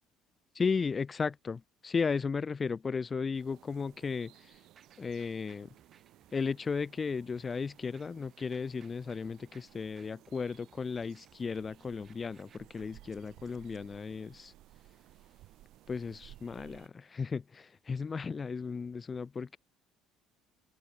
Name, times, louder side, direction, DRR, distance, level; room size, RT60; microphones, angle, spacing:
voice 1, 0.5-4.6 5.0-5.7 6.3-14.5 15.9-19.6, left 5 dB, 30° left, 0.3 m, -35 dB
sound 1, 3.3-16.9, right 15 dB, 60° right, 1.2 m, -59 dB
sound 2, 4.7-13.8, right 7 dB, 40° right, 2.4 m, -65 dB
hypercardioid pair, 60°, 0 cm